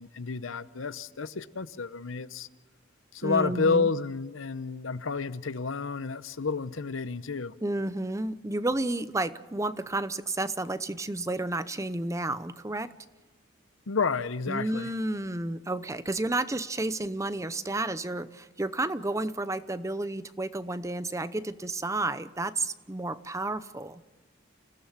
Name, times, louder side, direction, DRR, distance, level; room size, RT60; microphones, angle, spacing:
voice 1, 0.0-2.5 3.1-7.5 13.9-14.9, left 4 dB, 90° left, 0.9 m, -30 dB
voice 2, 3.2-3.9 7.6-12.9 14.5-24.0, right 2 dB, 15° right, 0.7 m, -31 dB
28.0 x 16.5 x 7.3 m
head